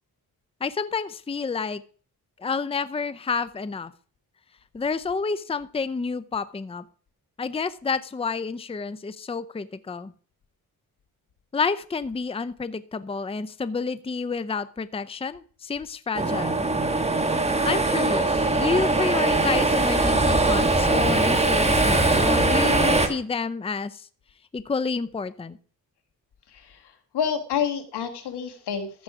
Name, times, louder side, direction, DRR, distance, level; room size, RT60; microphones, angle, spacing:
voice 1, 0.6-1.8 2.4-3.9 4.7-6.8 7.4-10.1 11.5-16.7 17.7-24.1 24.5-25.6, left 4 dB, 15° left, 15 dB, 0.6 m, -29 dB
sound 1, 16.1-23.1, right 2 dB, 15° right, 1.6 m, -21 dB
voice 2, 26.5-29.0, left 7 dB, 85° left, 7 dB, 1.8 m, -29 dB
14.0 x 6.3 x 4.8 m, 0.43 s
cardioid pair, 75°, 39 cm